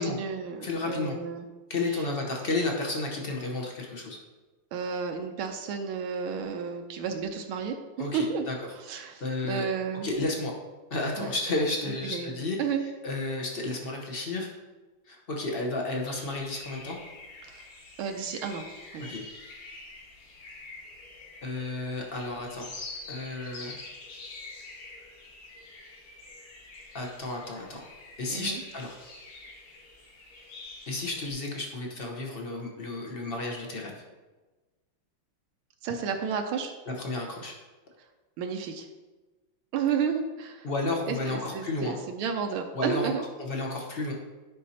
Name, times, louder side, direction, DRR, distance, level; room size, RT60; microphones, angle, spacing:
voice 1, 0.0-1.5 1.9-2.1 4.7-8.5 8.8-10.2 11.2-11.3 12.0-12.3 12.6-12.8 17.4-17.7 18.0-18.6 18.9-19.1 28.3-28.6 35.8-36.7 38.0-38.1 38.4-38.9 39.7-40.7 41.1-43.2, right 6 dB, 85° right, 4 dB, 1.5 m, -32 dB
voice 2, 0.6-1.2 1.7-4.2 8.0-8.5 8.9-9.6 10.0-10.5 10.9-12.6 13.0-14.5 15.1-17.0 19.1-19.2 21.4-22.8 23.1-23.8 26.9-27.8 28.2-29.0 30.9-33.9 36.9-37.5 40.6-42.0 42.7-43.1 43.4-44.1, left 2 dB, 45° left, 0 dB, 0.8 m, -32 dB
sound 1, 16.1-31.3, left 3 dB, 85° left, 2.2 m, -46 dB
10.5 x 5.4 x 2.8 m, 1.2 s
omnidirectional pair, 2.3 m